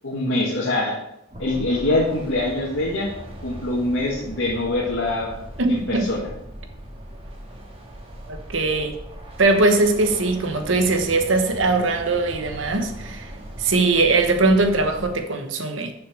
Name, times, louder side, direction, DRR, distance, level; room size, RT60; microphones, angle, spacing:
voice 1, 0.0-1.0 1.4-3.1 3.4-5.3 5.7-6.2, left 2 dB, 80° left, 1.6 m, -24 dB
sound 1, 1.3-15.2, right 1 dB, 30° right, 1.8 m, -39 dB
voice 2, 5.6-6.1 8.3-9.0 9.4-13.3 13.6-15.9, right 3 dB, 80° right, 1.2 m, -20 dB
6.7 x 6.4 x 6.4 m
head